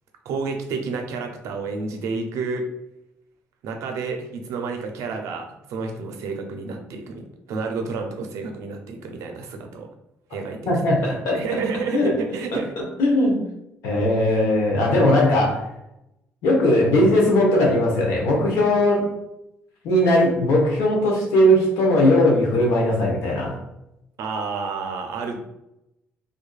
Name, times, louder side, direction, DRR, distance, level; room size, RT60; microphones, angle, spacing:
voice 1, 0.2-2.7 3.6-9.9 10.3-10.6 11.1-12.7 24.2-25.4, right 4 dB, 75° right, 4 dB, 0.4 m, -30 dB
voice 2, 10.7-11.4 11.9-12.2 13.0-13.4 13.8-15.6 16.4-19.0 19.8-23.6, left 1 dB, 80° left, -1 dB, 0.8 m, -19 dB
2.6 x 2.4 x 2.2 m, 0.85 s
supercardioid pair, 70°, 5 cm